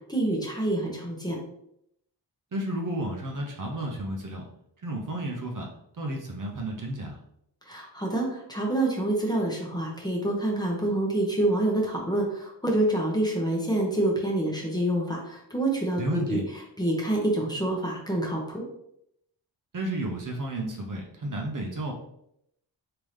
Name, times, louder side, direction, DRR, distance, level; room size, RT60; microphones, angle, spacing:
voice 1, 0.1-1.4 7.7-16.4 16.8-18.6, right 1 dB, 10° left, -2 dB, 0.9 m, -27 dB
voice 2, 2.5-4.4 4.8-5.7 6.0-7.2 16.0-16.4 19.7-21.9, right 1 dB, 45° right, 0 dB, 0.8 m, -32 dB
3.6 x 2.8 x 3.2 m, 0.76 s
wide cardioid pair, 85°, 44 cm